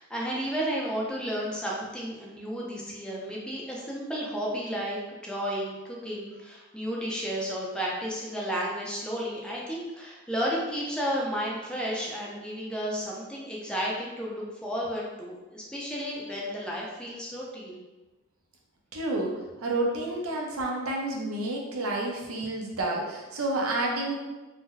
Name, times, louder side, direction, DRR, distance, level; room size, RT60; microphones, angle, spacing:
voice 1, 0.0-17.8, equal, 5° left, -4 dB, 0.5 m, -32 dB
voice 2, 18.9-19.3 19.6-24.1, right 2 dB, 90° right, 0 dB, 0.6 m, -29 dB
2.7 x 2.1 x 3.7 m, 1.1 s
head